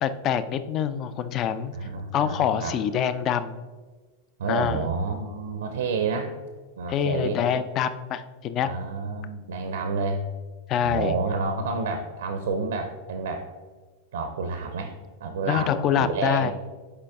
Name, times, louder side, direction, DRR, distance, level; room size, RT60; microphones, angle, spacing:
voice 1, 0.0-1.7 2.1-3.6 4.5-4.9 6.9-8.7 10.7-11.2 15.5-16.5, left 9 dB, 35° left, 13 dB, 0.3 m, -25 dB
voice 2, 1.7-2.8 4.4-6.3 6.8-7.4 8.6-10.3 10.8-13.5 14.1-14.9 15.2-16.5, right 4 dB, 65° right, 6 dB, 0.5 m, -29 dB
6.6 x 4.6 x 3.5 m, 1.4 s
figure-of-eight pair, 90°, 0 cm